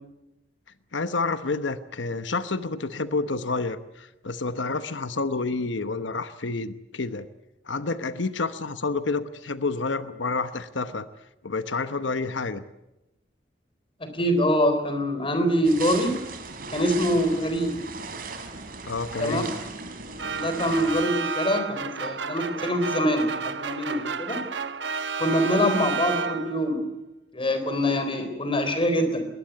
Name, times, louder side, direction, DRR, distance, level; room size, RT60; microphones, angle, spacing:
voice 1, 0.9-7.3 7.6-11.1 11.4-12.6 18.9-19.5, left 3 dB, 85° left, 12 dB, 1.0 m, -29 dB
voice 2, 14.0-16.2 16.7-17.7 19.2-19.7 20.3-24.4 25.2-26.8 27.3-29.3, equal, 30° left, 8 dB, 4.0 m, -24 dB
sound 1, 15.6-21.0, right 4 dB, 55° right, 3.3 m, -37 dB
sound 2, 20.2-26.7, right 5 dB, 70° right, 1.2 m, -31 dB
21.0 x 19.5 x 9.4 m, 0.94 s
head